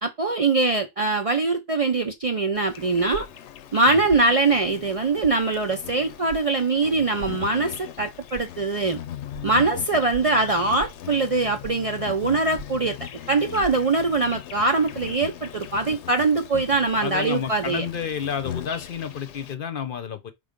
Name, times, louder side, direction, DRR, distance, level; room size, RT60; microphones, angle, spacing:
voice 1, 0.0-3.3 3.7-9.0 9.4-13.0 13.3-17.8, right 3 dB, 45° right, 0.5 m, -22 dB
Insect, 2.5-19.5, left 10 dB, 80° left, 0.9 m, -39 dB
sound 1, 3.1-3.4 4.1-4.3 5.2-5.4 6.3-6.5 7.2-7.4 8.3-8.5 9.3-9.4 10.1-10.3 10.8-11.0 11.6-11.9 12.6-12.8 13.6-13.7, right 5 dB, 70° right, 0.9 m, -39 dB
voice 2, 17.0-20.3, left 7 dB, 55° left, 0.8 m, -30 dB
5.2 x 3.6 x 5.1 m
omnidirectional pair, 1.2 m